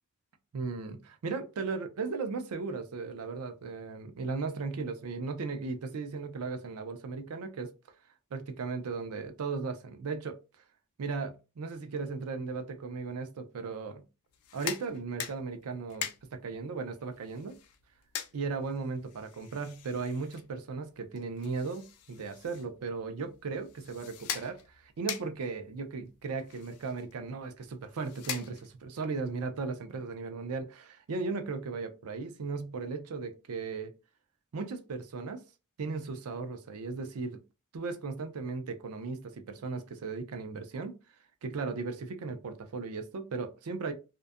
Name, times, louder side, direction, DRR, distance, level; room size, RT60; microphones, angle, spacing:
voice 1, 0.5-7.7 8.3-10.4 11.0-14.0 14.5-17.6 18.3-33.9 34.5-35.4 35.8-37.4 37.7-40.9 41.4-43.9, right 4 dB, 75° right, 0.4 m, -36 dB
sound 1, 14.3-29.0, left 9 dB, 80° left, 0.4 m, -44 dB
2.6 x 2.2 x 2.3 m
head